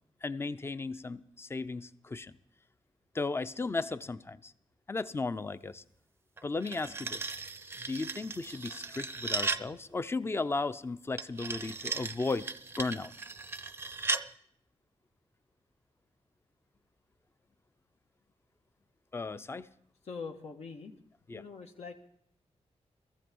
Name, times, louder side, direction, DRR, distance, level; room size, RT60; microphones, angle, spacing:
voice 1, 0.2-2.4 3.1-4.5 4.9-5.8 6.4-7.3 7.8-12.5 12.8-13.1 19.1-19.7 21.3-21.4, left 3 dB, 20° left, 14 dB, 0.6 m, -35 dB
sound 1, 6.4-9.7 11.2-14.3, right 3 dB, 20° right, 0.6 m, -37 dB
voice 2, 20.0-21.0 21.3-21.9, left 5 dB, 75° left, 3 dB, 1.8 m, -43 dB
18.0 x 14.5 x 5.4 m, 0.69 s
wide cardioid pair, 125°, 11 cm